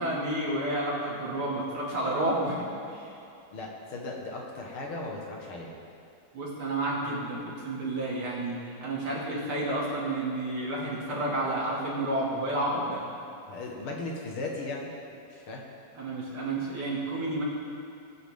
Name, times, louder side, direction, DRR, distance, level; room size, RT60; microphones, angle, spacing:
voice 1, 0.0-3.1 6.3-13.0 16.0-17.4, right 1 dB, 85° right, -6 dB, 3.4 m, -30 dB
voice 2, 3.5-5.7 13.5-14.9 15.3-15.6, left 2 dB, 80° left, -1 dB, 2.5 m, -37 dB
20.5 x 9.2 x 3.7 m, 2.7 s
omnidirectional pair, 2.3 m